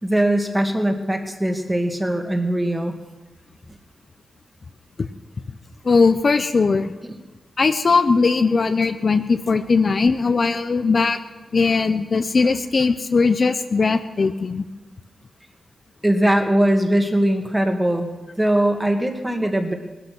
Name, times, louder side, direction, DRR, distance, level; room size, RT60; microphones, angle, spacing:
voice 1, 0.0-2.9 16.0-18.1 18.4-19.7, right 1 dB, 10° right, 4 dB, 2.1 m, -20 dB
voice 2, 5.8-6.9 7.6-11.2 11.5-14.6, left 4 dB, 50° left, 8 dB, 0.8 m, -19 dB
19.0 x 12.0 x 6.1 m, 1.2 s
cardioid pair, 85°, 0 cm